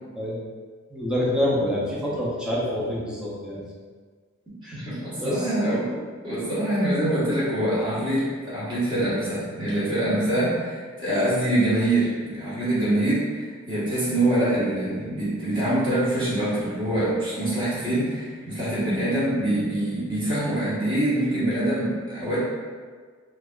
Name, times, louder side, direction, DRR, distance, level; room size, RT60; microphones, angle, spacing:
voice 1, 0.9-3.6 4.6-4.8 5.2-5.5, left 1 dB, 5° right, -7 dB, 0.7 m, -26 dB
voice 2, 4.7-6.0 6.2-22.4, right 1 dB, 25° right, -11 dB, 1.5 m, -24 dB
4.4 x 2.9 x 2.5 m, 1.5 s
head